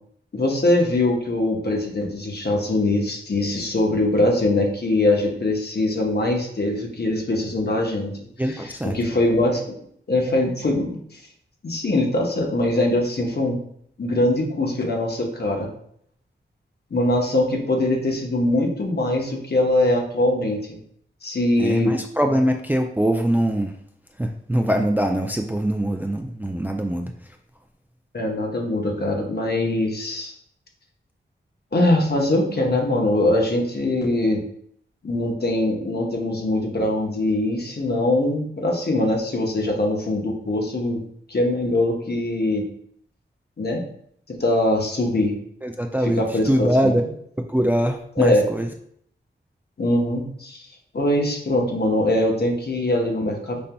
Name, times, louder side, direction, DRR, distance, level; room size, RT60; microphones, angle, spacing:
voice 1, 0.3-8.1 8.9-9.7 10.1-11.0 11.6-13.6 14.0-15.7 16.9-20.8 21.2-21.9 28.1-30.3 31.7-34.4 35.0-41.0 41.3-42.6 43.6-43.8 44.3-45.4 46.2-46.9 48.2-48.4 49.8-50.6 50.9-53.7, left 1 dB, 55° left, 0 dB, 1.0 m, -22 dB
voice 2, 8.4-9.0 21.6-23.8 24.2-27.4 45.6-47.0 47.5-48.7, right 1 dB, 10° right, 4 dB, 0.4 m, -23 dB
5.2 x 2.8 x 2.2 m, 0.66 s
cardioid pair, 45°, 20 cm